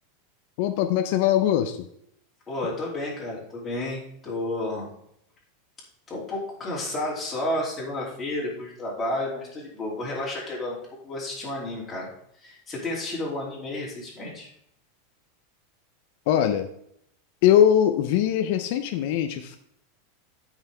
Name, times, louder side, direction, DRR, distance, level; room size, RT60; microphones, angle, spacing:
voice 1, 0.6-1.9 16.3-16.7 17.4-19.6, left 10 dB, 45° left, 7 dB, 0.6 m, -21 dB
voice 2, 2.5-4.9 6.1-12.1 12.4-14.5, left 1 dB, 10° left, -5 dB, 2.8 m, -31 dB
12.5 x 5.7 x 3.4 m, 0.72 s
supercardioid pair, 175°, 0 cm